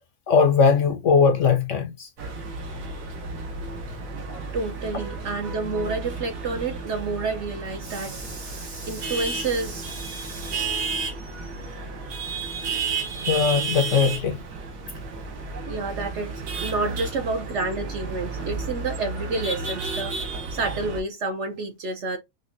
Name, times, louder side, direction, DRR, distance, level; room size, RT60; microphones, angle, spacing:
voice 1, 0.3-2.1 4.3-4.4 13.3-14.4, left 5 dB, 65° left, 0.8 m, -20 dB
sound 1, 2.2-21.0, right 4 dB, 80° right, 1.5 m, -32 dB
voice 2, 4.5-10.7 15.7-22.2, right 3 dB, 65° right, 0.8 m, -30 dB
5.3 x 2.1 x 2.5 m
omnidirectional pair, 1.6 m